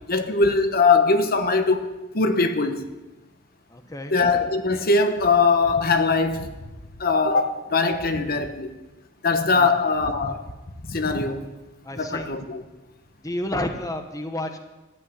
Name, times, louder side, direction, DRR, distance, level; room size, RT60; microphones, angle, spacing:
voice 1, 0.1-1.9 2.1-2.8 4.1-6.5 7.0-8.7 9.2-10.4 10.9-11.5 12.0-12.6, left 4 dB, 50° left, 1.2 m, -21 dB
voice 2, 3.7-4.1 9.5-9.7 11.8-12.3 13.2-14.6, left 1 dB, 15° left, 1.1 m, -30 dB
13.5 x 8.4 x 9.9 m
head